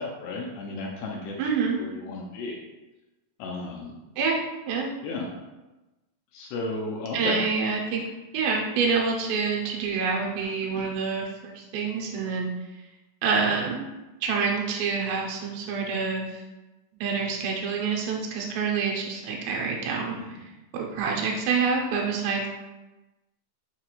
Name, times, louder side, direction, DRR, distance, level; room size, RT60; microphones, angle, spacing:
voice 1, 0.0-1.5 1.8-2.6 3.4-3.9 5.0-5.3 6.3-7.4 10.7-10.9 20.2-20.3, left 3 dB, 80° left, -2 dB, 2.5 m, -34 dB
voice 2, 1.4-1.8 4.2-4.4 4.7-4.9 7.1-8.0 8.3-12.5 13.2-13.9 14.2-16.4 17.0-20.4 20.7-22.5, right 5 dB, 85° right, -1 dB, 2.8 m, -27 dB
6.5 x 2.3 x 3.0 m, 1.1 s
omnidirectional pair, 5.0 m